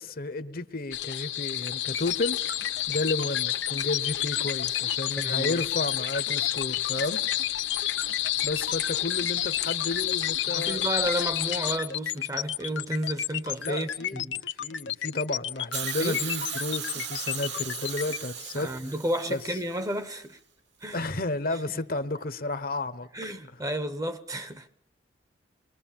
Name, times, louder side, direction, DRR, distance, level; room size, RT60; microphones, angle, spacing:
voice 1, 0.0-2.4 2.9-7.2 8.4-10.8 13.6-18.9 19.3-19.6 20.9-23.1, left 2 dB, 50° left, 1.0 m, -32 dB
sound 1, 0.9-11.8, left 13 dB, 75° left, 1.3 m, -30 dB
sound 2, 1.9-18.2, left 10 dB, 90° left, 1.0 m, -33 dB
voice 2, 5.2-5.6 10.5-14.3 16.0-16.2 18.6-20.4 20.8-21.0 23.1-24.7, right 1 dB, 20° right, 0.9 m, -32 dB
Hiss, 15.7-19.9 20.9-21.0, right 7 dB, 70° right, 2.4 m, -37 dB
29.0 x 22.0 x 7.4 m
head